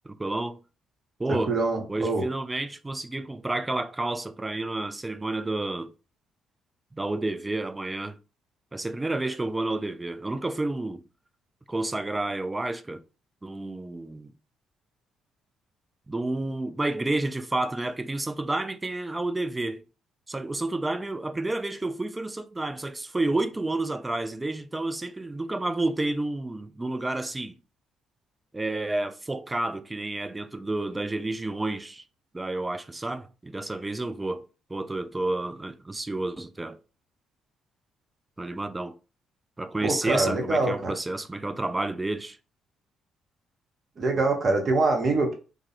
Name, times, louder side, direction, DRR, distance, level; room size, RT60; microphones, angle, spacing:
voice 1, 0.1-0.6 1.2-1.6 1.9-5.9 6.9-8.2 8.7-11.0 11.7-13.0 13.4-14.3 16.1-19.8 20.3-27.6 28.5-32.0 32.3-34.4 34.7-36.8 38.4-39.0 39.6-42.4, right 2 dB, 20° right, 0.3 m, -30 dB
voice 2, 1.5-2.2 39.8-41.0 44.0-45.3, right 3 dB, 45° right, 0.9 m, -24 dB
2.2 x 2.0 x 2.9 m
hypercardioid pair, 45°, 0 cm